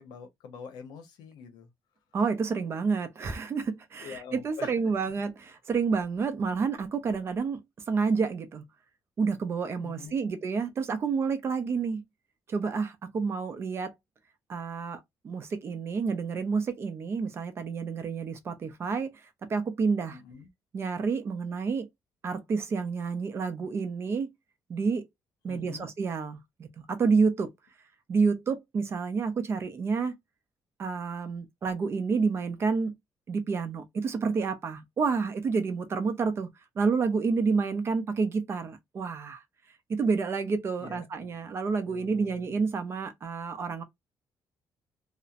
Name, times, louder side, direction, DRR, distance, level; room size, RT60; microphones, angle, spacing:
voice 1, 0.0-1.7 4.0-4.9 9.8-10.2 20.1-20.5 25.5-25.9 40.8-41.4 41.9-42.7, left 6 dB, 85° left, 0.8 m, -45 dB
voice 2, 2.1-7.6 7.9-8.6 9.2-12.0 12.5-13.9 14.5-19.2 19.5-20.2 20.7-21.9 22.2-24.3 24.7-25.0 25.4-27.5 28.1-30.2 30.8-32.9 33.3-36.5 36.8-39.4 39.9-43.8, right 5 dB, 35° right, 0.5 m, -29 dB
2.9 x 2.0 x 2.4 m
cardioid pair, 155°, 7 cm